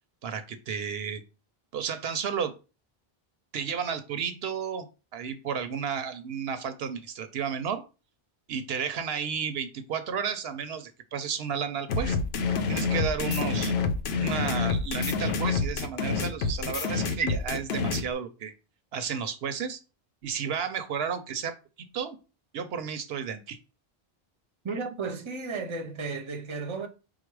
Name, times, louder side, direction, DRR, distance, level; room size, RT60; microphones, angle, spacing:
voice 1, 0.2-1.2 1.7-2.5 3.5-4.9 5.1-7.8 8.5-12.2 12.7-13.7 14.2-18.5 18.9-19.8 20.2-22.2 22.5-23.6, right 7 dB, 75° right, 0.8 m, -32 dB
sound 1, 11.9-18.0, left 4 dB, 80° left, 0.9 m, -27 dB
voice 2, 24.6-26.9, right 4 dB, 35° right, 0.7 m, -34 dB
4.7 x 2.1 x 4.6 m
omnidirectional pair, 1.1 m